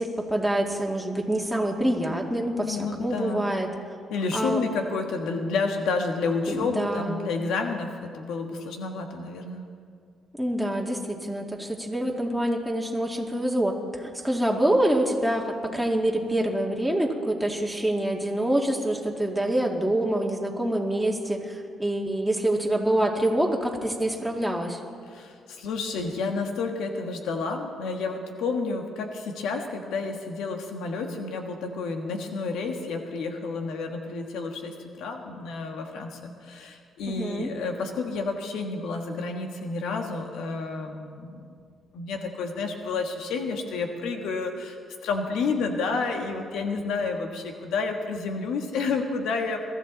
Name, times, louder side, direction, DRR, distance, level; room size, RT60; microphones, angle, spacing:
voice 1, 0.0-3.7 4.3-4.6 6.5-7.4 10.4-24.8 37.1-37.5, right 1 dB, ahead, -1 dB, 2.2 m, -26 dB
voice 2, 2.6-3.6 4.1-9.6 25.1-41.5 41.9-49.6, left 4 dB, 85° left, 4 dB, 1.5 m, -30 dB
22.0 x 13.5 x 4.1 m, 2.2 s
cardioid pair, 90°, 0 cm